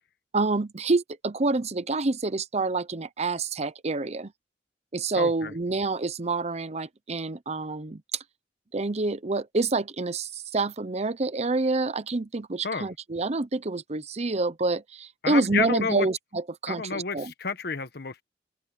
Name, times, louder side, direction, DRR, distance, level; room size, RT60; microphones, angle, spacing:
voice 1, 0.3-4.3 4.9-8.0 8.7-17.3, right 3 dB, 40° right, 0.8 m, -27 dB
voice 2, 5.1-5.5 12.6-12.9 15.2-16.1 16.7-18.2, left 5 dB, 65° left, 1.3 m, -30 dB
open air
head